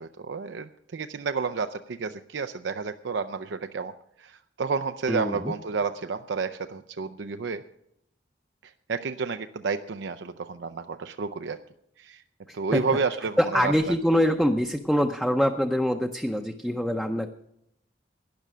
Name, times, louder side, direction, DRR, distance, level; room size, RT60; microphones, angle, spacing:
voice 1, 0.0-3.9 4.2-7.6 8.6-11.6 12.0-12.2 12.5-13.7, right 4 dB, 75° right, 9 dB, 0.5 m, -30 dB
voice 2, 5.1-5.5 12.5-12.8 13.4-17.3, equal, ahead, 4 dB, 0.6 m, -24 dB
12.0 x 10.0 x 6.2 m, 0.76 s
head